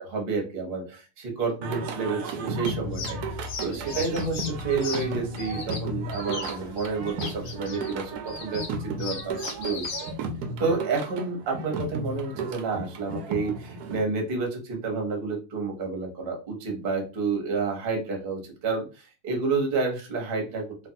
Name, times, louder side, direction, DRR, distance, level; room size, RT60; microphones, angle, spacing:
voice 1, 0.1-9.9 10.6-20.6, right 4 dB, 55° right, 1 dB, 0.6 m, -30 dB
Singing, 1.6-14.0, right 3 dB, 80° right, 0.8 m, -34 dB
sound 1, 2.6-10.1, left 4 dB, 75° left, 0.8 m, -38 dB
3.3 x 2.3 x 2.7 m, 0.31 s
omnidirectional pair, 2.3 m